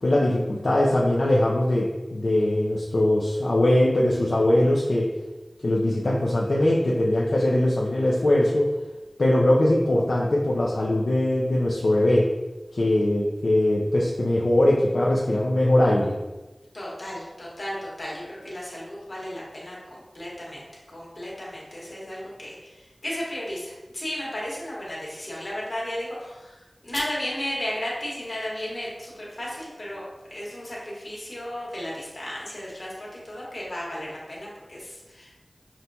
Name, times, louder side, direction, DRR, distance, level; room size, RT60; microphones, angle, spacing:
voice 1, 0.0-5.1 5.6-8.7 9.2-12.3 12.7-16.2, left 1 dB, 80° left, -4 dB, 0.4 m, -21 dB
voice 2, 16.7-35.4, left 1 dB, 65° left, -5 dB, 1.3 m, -34 dB
5.8 x 2.2 x 2.6 m, 1.1 s
wide cardioid pair, 50°, 0 cm